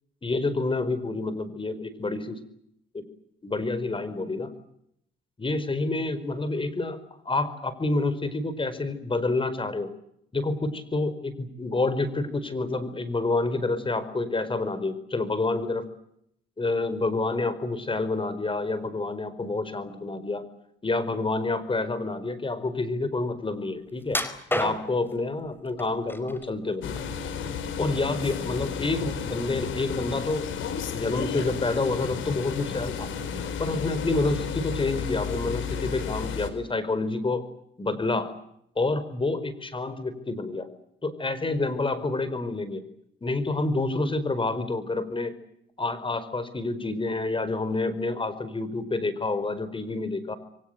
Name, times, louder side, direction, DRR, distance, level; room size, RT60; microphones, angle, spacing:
voice 1, 0.2-2.4 2.9-3.0 3.4-4.5 5.4-7.0 7.2-9.9 10.3-15.9 16.6-20.4 20.8-24.2 24.6-27.0 27.8-30.5 30.9-33.1 33.6-37.4 37.8-38.3 38.8-40.7 41.0-42.8 43.2-45.3 45.8-50.4, left 3 dB, 25° left, 14 dB, 4.9 m, -28 dB
sound 1, 24.1-25.1 25.8-26.5 26.9-27.8 28.1-28.3 28.8-28.9, left 1 dB, 10° left, 4.5 m, -30 dB
sound 2, 26.8-36.5, left 7 dB, 75° left, 4.8 m, -32 dB
29.0 x 23.5 x 8.0 m, 0.76 s
cardioid pair, 90°, 20 cm